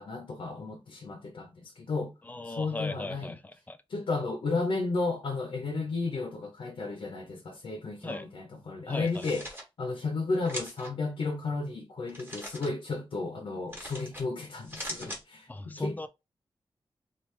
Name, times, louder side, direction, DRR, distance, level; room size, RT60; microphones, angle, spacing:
voice 1, 0.0-2.1 2.4-3.4 3.9-9.5 9.8-16.1, left 3 dB, 70° left, 0.7 m, -33 dB
voice 2, 2.3-3.8 8.0-8.3 8.9-9.3 15.5-16.1, left 2 dB, 20° left, 0.3 m, -37 dB
sound 1, 9.0-9.6 10.5-10.9 12.1-12.7 13.7-14.2 14.6-15.2, equal, 20° right, 1.1 m, -40 dB
3.2 x 2.5 x 3.2 m
wide cardioid pair, 160°, 9 cm